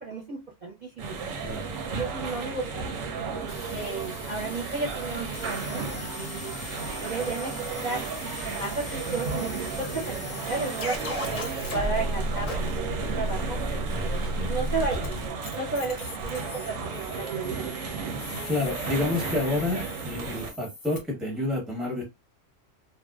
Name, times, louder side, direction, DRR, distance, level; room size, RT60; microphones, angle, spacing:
voice 1, 0.0-1.2 1.9-2.9 3.7-6.5 7.0-8.0 8.4-13.6 14.4-15.1 15.5-17.7 18.0-18.1, right 3 dB, 45° right, 0.7 m, -33 dB
sound 1, 1.0-20.5, right 5 dB, 85° right, 1.0 m, -34 dB
sound 2, 3.5-21.0, left 1 dB, 55° left, 0.6 m, -36 dB
voice 2, 18.4-22.0, left 2 dB, ahead, 0.7 m, -29 dB
2.5 x 2.1 x 2.2 m
omnidirectional pair, 1.3 m